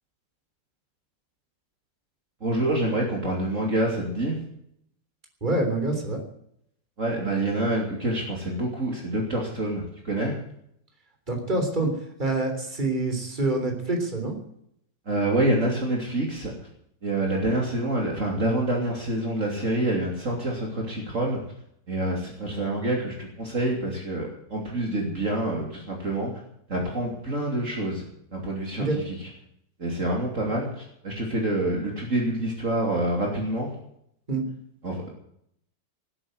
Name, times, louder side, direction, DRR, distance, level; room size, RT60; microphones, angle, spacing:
voice 1, 2.4-4.4 7.0-10.4 15.1-16.5 17.0-21.4 21.9-26.3 26.7-28.0 28.3-29.3 29.8-33.7 34.8-35.1, right 1 dB, 45° right, -1 dB, 3.3 m, -27 dB
voice 2, 5.4-6.2 11.3-11.9 12.2-14.4 28.8-29.0 34.3-34.4, right 2 dB, 25° right, 3 dB, 3.7 m, -26 dB
18.5 x 9.0 x 7.9 m, 0.72 s
omnidirectional pair, 1.9 m